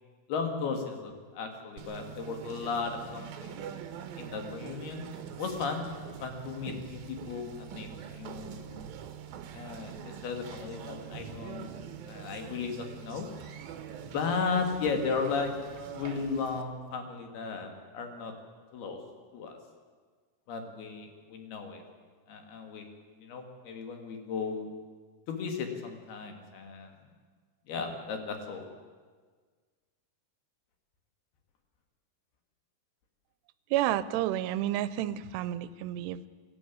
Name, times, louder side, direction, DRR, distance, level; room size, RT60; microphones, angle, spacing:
voice 1, 0.3-3.6 4.2-5.1 5.4-5.8 6.2-8.9 9.5-13.3 14.0-15.5 15.9-18.3 18.7-19.0 19.3-19.6 20.5-21.8 22.3-22.9 23.2-24.7 25.3-27.0 27.7-28.6, left 5 dB, 70° left, 4 dB, 4.1 m, -35 dB
Conversation, 1.8-16.6, right 9 dB, 70° right, 2.9 m, -44 dB
voice 2, 33.7-36.3, right 13 dB, 85° right, 16 dB, 2.9 m, -30 dB
24.0 x 12.5 x 9.5 m, 1.5 s
omnidirectional pair, 4.7 m